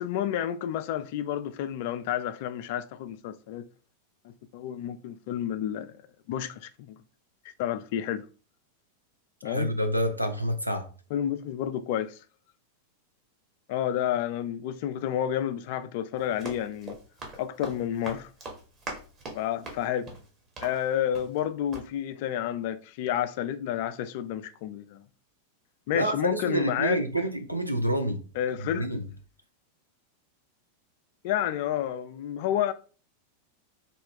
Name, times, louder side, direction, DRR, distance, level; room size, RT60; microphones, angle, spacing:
voice 1, 0.0-3.7 4.2-5.9 6.3-7.0 7.4-8.3 9.4-9.7 11.1-12.2 13.7-17.0 17.4-18.3 19.3-20.1 20.6-25.0 25.9-27.0 28.4-28.9 31.2-32.7, left 10 dB, 50° left, 0.3 m, -30 dB
voice 2, 9.4-10.9 25.9-28.2 28.6-29.0, right 1 dB, 90° right, 0.5 m, -28 dB
Run, 16.2-21.5 21.7-21.9, right 2 dB, 30° right, 1.2 m, -42 dB
3.6 x 2.2 x 3.6 m
figure-of-eight pair, 90°, 0 cm